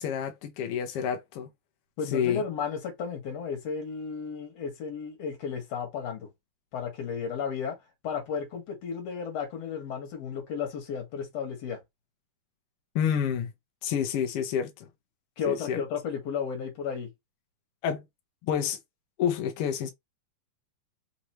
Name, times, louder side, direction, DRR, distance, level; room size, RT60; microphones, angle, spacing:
voice 1, 0.0-1.5 2.1-2.4 12.9-13.5 13.8-14.9 15.5-15.8 17.8-18.0 18.4-18.8 19.2-19.9, left 8 dB, 80° left, 1.3 m, -28 dB
voice 2, 2.0-6.3 6.7-7.8 8.0-11.8 15.4-17.1, left 6 dB, 60° left, 2.5 m, -33 dB
5.0 x 3.0 x 3.0 m
omnidirectional pair, 3.6 m